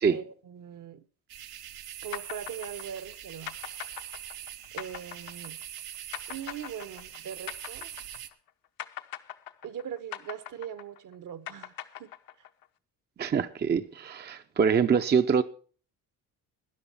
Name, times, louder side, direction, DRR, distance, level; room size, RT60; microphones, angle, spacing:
voice 1, 0.1-1.0 2.0-3.5 4.7-5.6 6.3-7.9 9.6-12.1, right 9 dB, 55° right, 1.0 m, -41 dB
sound 1, 1.3-8.3, right 11 dB, 75° right, 1.2 m, -43 dB
sound 2, 2.1-8.5 8.8-12.6, left 12 dB, 65° left, 0.9 m, -41 dB
voice 2, 13.2-15.4, right 6 dB, 30° right, 0.6 m, -24 dB
13.0 x 10.0 x 5.5 m
cardioid pair, 90°, 37 cm